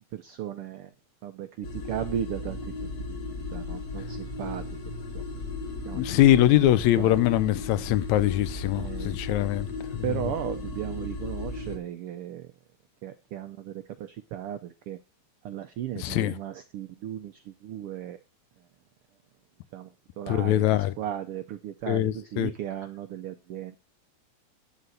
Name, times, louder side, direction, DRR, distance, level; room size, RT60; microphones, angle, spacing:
voice 1, 0.1-0.9 1.2-4.6 5.1-5.2 5.9-6.2 7.0-7.2 8.8-9.1 10.0-12.5 13.0-15.0 15.4-18.2 19.7-19.9 20.2-23.8, right 11 dB, 90° right, 1.2 m, -36 dB
sound 1, 1.6-11.8, left 3 dB, 50° left, 2.6 m, -36 dB
voice 2, 5.9-9.7 9.9-10.2 16.0-16.4 20.3-20.9 21.9-22.5, left 13 dB, 80° left, 1.9 m, -23 dB
11.0 x 4.1 x 7.8 m
omnidirectional pair, 3.3 m